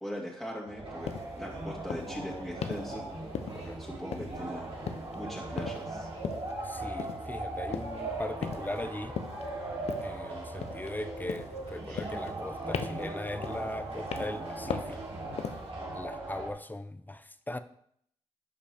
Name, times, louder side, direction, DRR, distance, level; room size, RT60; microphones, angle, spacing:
voice 1, 0.0-1.1 1.4-3.1 3.6-4.7 5.1-6.1, equal, ahead, -4 dB, 2.3 m, -40 dB
sound 1, 0.7-16.5, right 2 dB, 60° right, 3.2 m, -39 dB
sound 2, 1.1-1.3 1.9-2.2 2.6-2.9 3.3-3.8 4.1-4.5 4.9-5.2 5.6-5.9 6.2-6.5 7.0-7.3 7.7-8.0 8.4-8.8 9.2-9.4 9.9-10.2 10.6-11.0 11.3-11.6 12.0-12.5 12.7-13.1 13.4-13.7 14.1-14.4 14.7-15.0 15.4-15.7, left 7 dB, 80° left, 0.6 m, -37 dB
voice 2, 3.5-3.8 6.6-9.1 10.0-15.0 15.9-17.6, left 1 dB, 15° left, 11 dB, 0.6 m, -39 dB
11.5 x 5.0 x 3.5 m, 0.67 s
cardioid pair, 55°, 11 cm